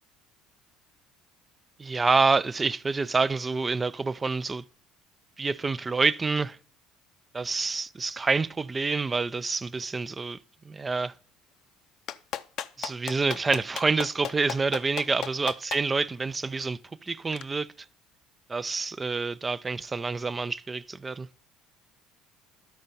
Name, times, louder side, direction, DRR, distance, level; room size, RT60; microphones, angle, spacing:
voice 1, 1.8-4.6 5.4-6.6 7.3-10.4 10.6-11.1 12.8-17.7 18.5-21.3, right 4 dB, 20° right, 0.3 m, -27 dB
Clapping, 12.1-15.8 17.3-17.4, left 10 dB, 55° left, 0.5 m, -34 dB
11.5 x 4.3 x 5.3 m
cardioid pair, 115°, 0 cm